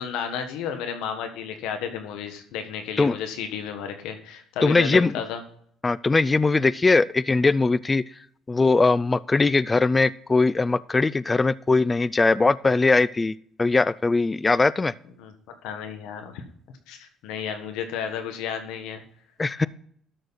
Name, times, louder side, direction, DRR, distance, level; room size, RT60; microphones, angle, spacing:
voice 1, 0.0-5.4 15.2-15.3 15.6-16.4 16.9-19.0, left 7 dB, 85° left, 7 dB, 1.5 m, -32 dB
voice 2, 4.6-5.1 5.8-8.0 8.5-13.3 13.6-14.9 19.4-19.7, left 3 dB, 20° left, 19 dB, 0.4 m, -20 dB
12.5 x 6.5 x 4.1 m, 0.62 s
cardioid pair, 105°, 0 cm